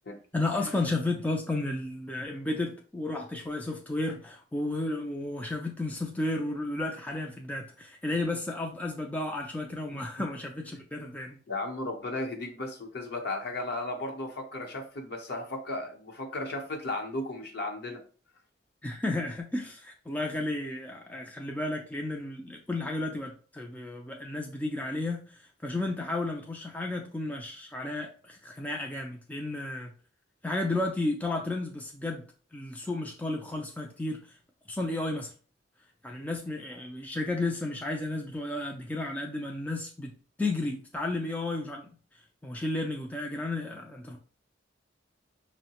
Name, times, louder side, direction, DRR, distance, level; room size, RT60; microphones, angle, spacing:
voice 1, 0.3-11.4 18.8-29.9 30.4-32.2 32.5-34.4 34.7-35.3 36.0-40.1 40.4-41.9 42.4-44.2, left 2 dB, 10° left, 1 dB, 0.3 m, -33 dB
voice 2, 11.5-18.0, left 2 dB, 55° left, 2 dB, 0.8 m, -35 dB
5.4 x 2.1 x 2.8 m, 0.41 s
head